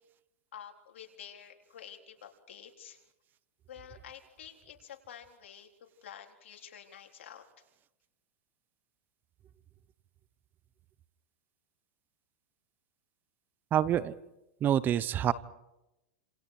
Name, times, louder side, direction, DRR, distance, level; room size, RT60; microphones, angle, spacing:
voice 1, 0.5-3.0 3.7-5.7 6.0-7.4, left 9 dB, 80° left, 3 dB, 3.9 m, -49 dB
voice 2, 13.7-14.1 14.6-15.3, right 10 dB, 30° right, 18 dB, 1.0 m, -26 dB
29.5 x 27.5 x 5.0 m, 0.93 s
hypercardioid pair, 130°, 7 cm